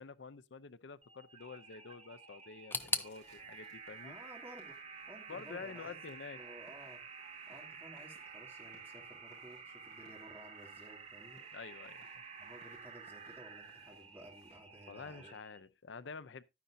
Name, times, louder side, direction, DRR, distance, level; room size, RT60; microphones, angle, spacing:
voice 1, 0.0-4.2 5.3-6.4 11.5-12.2 14.9-16.4, left 5 dB, 85° left, 0.6 m, -48 dB
sound 1, 1.0-15.6, right 5 dB, 35° right, 1.1 m, -51 dB
sound 2, 2.7-14.6, left 1 dB, 40° left, 5.9 m, -68 dB
sound 3, 2.7-5.6 5.8-6.6 6.9-7.0 7.9-8.0, left 3 dB, 10° left, 0.5 m, -42 dB
voice 2, 4.0-4.8 5.1-6.0 6.3-7.0 7.5-11.4 12.4-15.4, right 1 dB, 10° right, 2.7 m, -55 dB
11.5 x 9.7 x 2.6 m
head